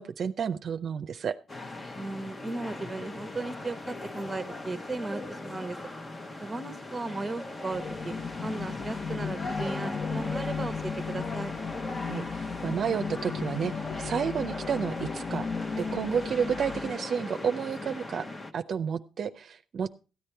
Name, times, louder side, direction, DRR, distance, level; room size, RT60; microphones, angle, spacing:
voice 1, 0.0-1.4 12.1-15.5 15.8-18.3 18.5-19.9, right 7 dB, 55° right, 9 dB, 0.5 m, -31 dB
sound 1, 1.5-18.5, left 2 dB, 25° left, 1.1 m, -39 dB
voice 2, 1.9-5.8 6.4-8.1 8.4-11.5, right 2 dB, 20° right, 13 dB, 1.0 m, -36 dB
sound 2, 7.7-17.0, left 5 dB, 45° left, 0.5 m, -35 dB
13.5 x 8.6 x 4.5 m, 0.33 s
cardioid pair, 90°, 0 cm